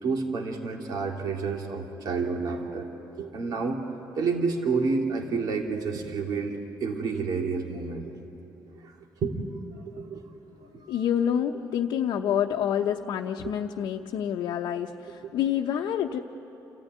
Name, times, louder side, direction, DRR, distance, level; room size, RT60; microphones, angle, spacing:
voice 1, 0.0-2.9 3.2-3.8 4.2-8.1 8.7-9.0 9.2-9.4 9.7-10.2 10.6-11.0 12.3-12.4 13.4-13.5 15.2-15.3, right 4 dB, 60° right, 2 dB, 2.4 m, -30 dB
voice 2, 10.9-16.2, left 9 dB, 75° left, 1 dB, 0.8 m, -27 dB
28.5 x 14.5 x 9.4 m, 3.0 s
cardioid pair, 140°, 7 cm